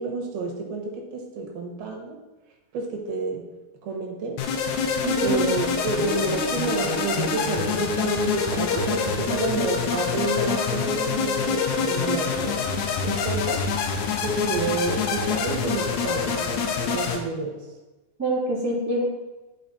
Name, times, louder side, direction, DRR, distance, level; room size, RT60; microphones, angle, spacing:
voice 1, 0.0-2.2 2.7-3.4 3.8-4.4 5.2-12.7 13.0-13.6 14.2-17.6, right 3 dB, 85° right, 1 dB, 3.2 m, -29 dB
sound 1, 4.4-17.2, left 5 dB, 75° left, 1.9 m, -26 dB
voice 2, 5.0-5.4 18.2-19.0, right 1 dB, 5° right, -6 dB, 1.7 m, -25 dB
12.0 x 4.5 x 4.2 m, 1.1 s
omnidirectional pair, 4.3 m